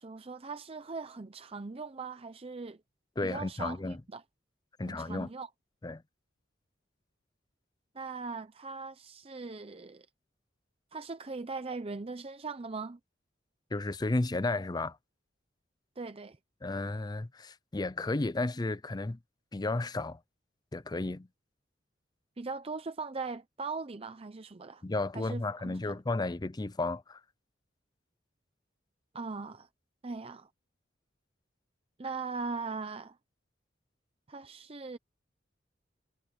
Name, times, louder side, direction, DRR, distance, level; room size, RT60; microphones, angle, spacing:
voice 1, 0.0-2.8 3.2-4.2 4.9-5.5 7.9-10.1 10.9-13.0 16.0-16.4 22.4-24.8 25.1-26.0 29.1-29.7 30.0-30.5 32.0-33.2 34.3-35.0, right 4 dB, 30° right, 0.7 m, -40 dB
voice 2, 3.2-4.0 4.8-5.3 5.8-6.0 13.7-15.0 16.6-19.2 19.5-20.2 20.7-21.3 24.8-27.2, left 2 dB, 20° left, 0.5 m, -33 dB
head